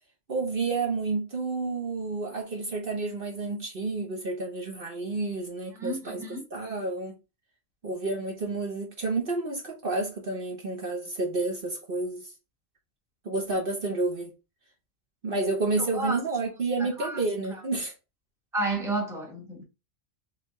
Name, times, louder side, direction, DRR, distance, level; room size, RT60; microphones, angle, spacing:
voice 1, 0.3-6.2 6.5-7.1 7.8-12.3 13.2-14.3 15.2-17.9, right 3 dB, 50° right, 1.2 m, -30 dB
voice 2, 5.7-6.4 15.8-16.2 16.8-17.2 18.5-19.6, right 2 dB, 5° right, 1.1 m, -31 dB
3.8 x 3.5 x 3.2 m
omnidirectional pair, 1.3 m